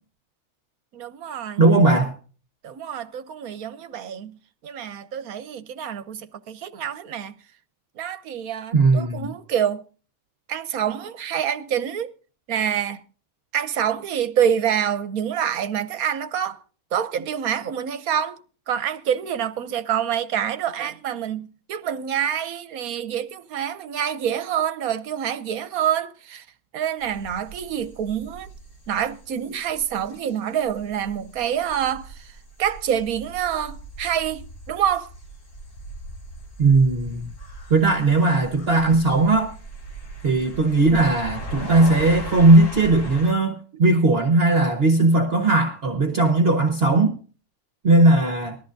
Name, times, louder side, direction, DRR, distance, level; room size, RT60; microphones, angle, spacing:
voice 1, 0.9-1.6 2.6-4.4 4.6-7.3 8.0-9.8 10.5-12.1 12.5-13.0 13.5-16.6 16.9-18.4 18.7-26.5 26.7-28.5 28.9-35.1, right 9 dB, 75° right, 1.2 m, -26 dB
voice 2, 1.6-2.1 8.7-9.3 36.6-37.3 37.7-39.5 40.2-47.2 47.8-48.6, right 2 dB, 45° right, 1.3 m, -18 dB
sound 1, 27.0-43.3, right 1 dB, 55° left, 2.8 m, -39 dB
20.0 x 13.5 x 2.6 m
omnidirectional pair, 1.6 m